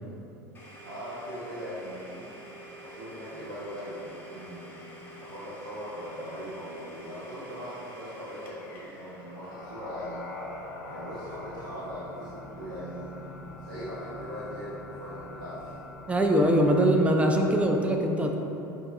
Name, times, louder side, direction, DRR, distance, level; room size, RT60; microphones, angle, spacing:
Domestic sounds home sounds, 0.5-12.2, equal, 20° left, 1.0 m, -48 dB
voice 1, 0.8-2.4 2.8-4.8 5.2-10.4 10.8-13.1 13.6-15.7, equal, 65° right, -10 dB, 0.8 m, -40 dB
sound 1, 9.3-17.7, left 2 dB, 70° left, 0.6 m, -43 dB
voice 2, 16.1-18.3, right 1 dB, 10° right, 3 dB, 0.5 m, -22 dB
7.6 x 2.7 x 2.4 m, 3.0 s
figure-of-eight pair, 80°, 11 cm